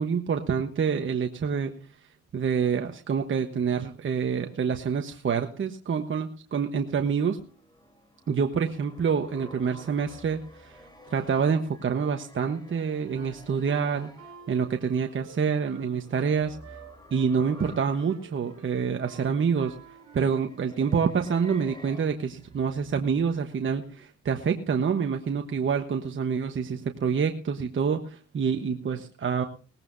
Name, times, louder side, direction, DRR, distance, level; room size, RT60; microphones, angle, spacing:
voice 1, 0.0-1.7 2.3-7.4 8.3-10.8 11.1-14.1 14.5-16.6 17.1-19.7 20.1-29.4, right 6 dB, 40° right, 5 dB, 1.2 m, -27 dB
sound 1, 7.2-24.0, left 1 dB, 15° left, 3.3 m, -52 dB
Wind instrument woodwind instrument, 13.1-20.6, right 6 dB, 70° right, 3.2 m, -50 dB
19.0 x 15.0 x 2.7 m, 0.38 s
cardioid pair, 90°, 30 cm